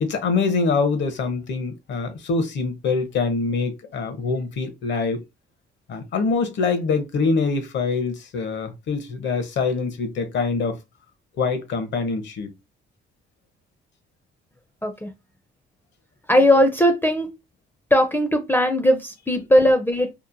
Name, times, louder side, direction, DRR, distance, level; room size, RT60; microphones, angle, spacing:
voice 1, 0.0-5.2 5.9-10.8 11.4-12.5, left 4 dB, 65° left, 0.7 m, -24 dB
voice 2, 16.3-17.3 17.9-20.1, equal, 10° left, 0.4 m, -18 dB
2.9 x 2.1 x 2.5 m
cardioid pair, 90°, 20 cm